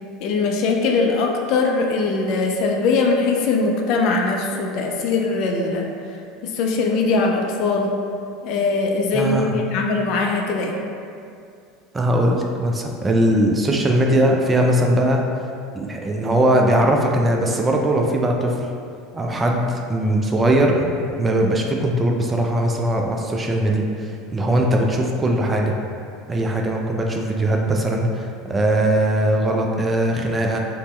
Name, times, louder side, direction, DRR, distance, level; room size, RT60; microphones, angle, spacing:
voice 1, 0.2-5.9 6.4-7.9 8.4-10.7, left 3 dB, 55° left, 1 dB, 0.4 m, -21 dB
voice 2, 9.1-9.6 11.9-15.2 15.7-18.7 19.1-25.7 26.3-30.6, right 1 dB, 20° right, 1 dB, 0.4 m, -20 dB
4.0 x 2.1 x 3.2 m, 2.4 s
figure-of-eight pair, 75°, 0 cm